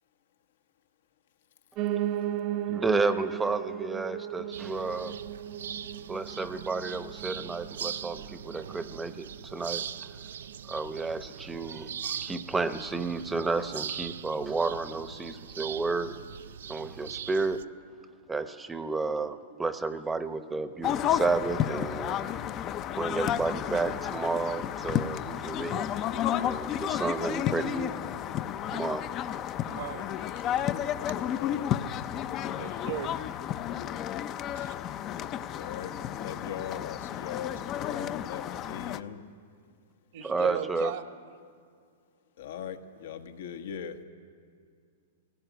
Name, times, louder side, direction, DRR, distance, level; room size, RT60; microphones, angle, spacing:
Piano, 1.8-10.9 11.3-12.4 12.7-12.8 13.0-13.1 13.4-13.5 14.0-14.1, right 11 dB, 40° right, 0.8 m, -37 dB
voice 1, 2.7-5.1 6.1-9.8 10.7-16.1 16.7-17.6 18.3-22.4 23.0-25.9 26.4-28.0 28.7-29.1 40.2-40.9, right 3 dB, 10° right, 11 dB, 0.9 m, -31 dB
sound 1, 4.5-17.6, right 8 dB, 85° right, 0.5 m, -41 dB
sound 2, 20.8-39.0, left 10 dB, 30° left, 0.6 m, -32 dB
voice 2, 29.6-30.3 30.6-30.7 32.6-33.1 34.5-34.7 40.1-41.0, right 10 dB, 60° right, 9 dB, 1.2 m, -37 dB
voice 3, 31.2-31.7 35.5-39.2 42.4-44.0, left 8 dB, 75° left, 7 dB, 1.5 m, -40 dB
19.5 x 17.0 x 9.3 m, 2.2 s
hypercardioid pair, 135°, 0 cm